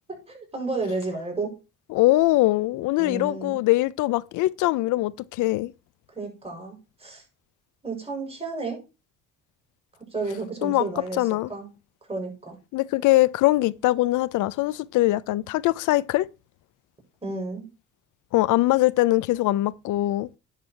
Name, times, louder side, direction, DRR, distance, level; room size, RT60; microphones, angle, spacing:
voice 1, 0.3-1.5 3.0-3.6 6.1-7.2 7.8-8.8 10.1-11.2 11.5-11.7 12.1-12.6 17.2-17.7, right 3 dB, 20° right, 6.6 m, -31 dB
voice 2, 1.9-5.7 10.6-10.8 11.2-11.5 12.7-16.3 18.3-20.3, left 17 dB, 90° left, 0.5 m, -22 dB
10.5 x 6.7 x 4.6 m
cardioid pair, 90°, 30 cm